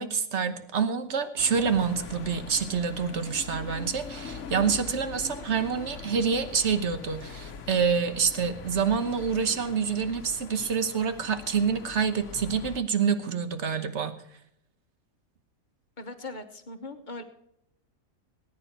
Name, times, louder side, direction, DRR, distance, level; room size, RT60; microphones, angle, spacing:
voice 1, 0.0-14.1, right 6 dB, 55° right, 10 dB, 1.4 m, -27 dB
sound 1, 1.4-12.8, left 5 dB, 65° left, 1.3 m, -42 dB
voice 2, 16.0-17.2, left 2 dB, 35° left, 7 dB, 1.3 m, -40 dB
18.5 x 9.4 x 4.5 m, 0.76 s
omnidirectional pair, 1.4 m